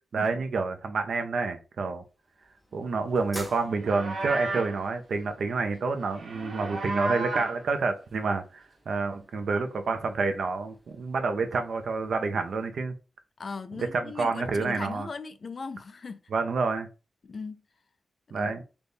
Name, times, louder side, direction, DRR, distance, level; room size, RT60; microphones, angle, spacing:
voice 1, 0.1-2.0 2.7-12.9 13.9-15.1 16.3-16.9 18.3-18.6, right 4 dB, 60° right, 0.6 m, -28 dB
sound 1, 1.9-12.7, equal, 5° right, 0.7 m, -51 dB
Livestock farm animals working animals, 3.7-4.8 6.1-7.6, right 2 dB, 90° right, 1.0 m, -33 dB
voice 2, 13.4-16.3 17.2-17.6 18.3-18.5, left 4 dB, 40° left, 0.4 m, -38 dB
4.0 x 2.2 x 3.5 m
wide cardioid pair, 170°, 0 cm